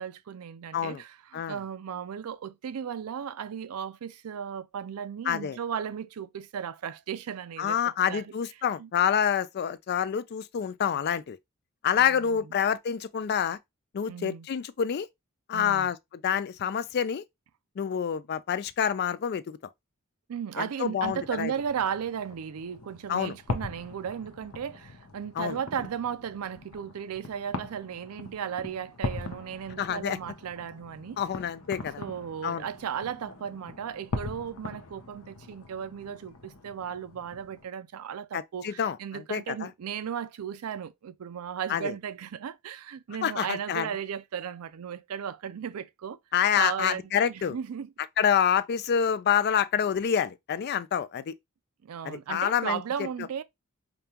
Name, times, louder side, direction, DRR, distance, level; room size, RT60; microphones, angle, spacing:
voice 1, 0.0-8.3 8.8-8.9 12.0-12.4 14.1-14.5 15.5-15.9 20.3-31.2 32.0-46.2 46.6-47.9 51.8-53.4, right 8 dB, 80° right, 0.4 m, -35 dB
voice 2, 5.3-5.6 7.6-11.4 11.8-13.6 13.9-15.1 15.5-16.0 16.2-17.2 17.8-19.6 20.6-21.5 23.1-23.4 25.4-25.6 29.8-30.2 31.2-32.0 32.4-32.6 38.3-39.7 41.7-41.9 43.2-43.9 46.3-47.6 48.2-51.3 52.0-52.8, left 8 dB, 50° left, 0.3 m, -27 dB
sound 1, 21.0-37.7, left 3 dB, 70° left, 0.7 m, -41 dB
5.1 x 2.3 x 2.8 m
head